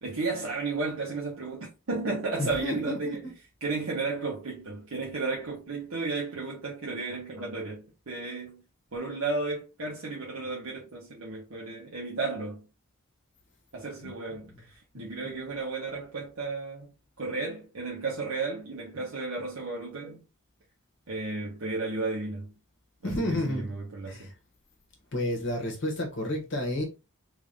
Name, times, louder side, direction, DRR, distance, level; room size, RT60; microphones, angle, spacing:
voice 1, 0.0-3.3 3.6-8.6 8.9-12.6 13.7-16.9 17.2-20.2 21.1-22.5 23.0-24.3, right 3 dB, 75° right, 1.0 m, -33 dB
voice 2, 2.4-3.3 14.0-14.1 23.0-23.7 24.0-24.3 25.1-26.8, left 1 dB, 55° left, 0.9 m, -31 dB
3.3 x 2.6 x 3.3 m
head